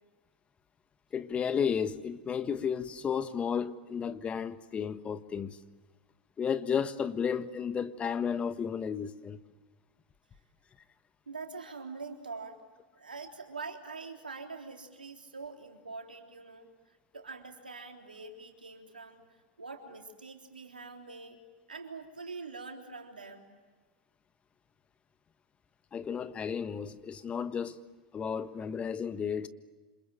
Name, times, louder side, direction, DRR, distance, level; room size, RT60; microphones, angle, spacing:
voice 1, 1.1-5.6 6.4-9.4 25.9-27.8 28.1-29.5, left 7 dB, 25° left, 1.4 m, -33 dB
voice 2, 11.3-12.6 12.9-19.2 19.6-21.4 21.7-23.5, right 4 dB, 85° right, 3.6 m, -44 dB
28.5 x 27.0 x 7.6 m
figure-of-eight pair, 90°, 5 cm